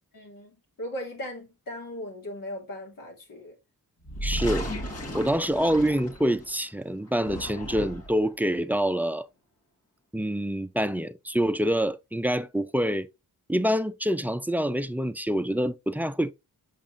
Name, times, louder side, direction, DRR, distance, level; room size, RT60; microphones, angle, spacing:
voice 1, 0.1-3.5, equal, 65° left, 3.3 m, -38 dB
sound 1, 4.0-6.6 7.1-8.2, equal, 45° left, 2.2 m, -35 dB
voice 2, 4.2-4.7 5.1-9.3 10.1-13.1 13.5-16.3, equal, 5° right, 0.5 m, -26 dB
7.4 x 5.3 x 2.7 m
cardioid pair, 75°, 35 cm